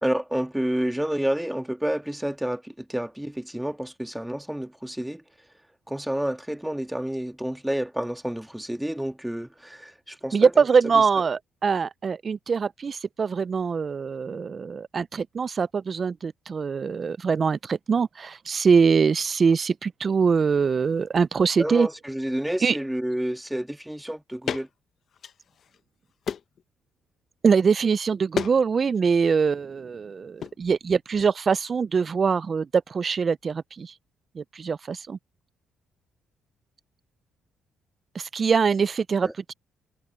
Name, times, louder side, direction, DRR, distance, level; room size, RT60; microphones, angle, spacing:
voice 1, 0.0-5.2 5.9-10.5 21.6-24.7 39.2-39.3, right 1 dB, 5° right, 1.6 m, -29 dB
voice 2, 10.3-21.9 22.6-22.8 27.4-33.9 34.4-35.2 38.1-39.5, right 5 dB, 40° right, 0.4 m, -23 dB
sound 1, 24.5-24.7 25.1-25.8 26.2-26.6 28.3-28.6 28.9-29.3 30.4-30.6, left 8 dB, 55° left, 0.7 m, -32 dB
cardioid pair, 90°, 0 cm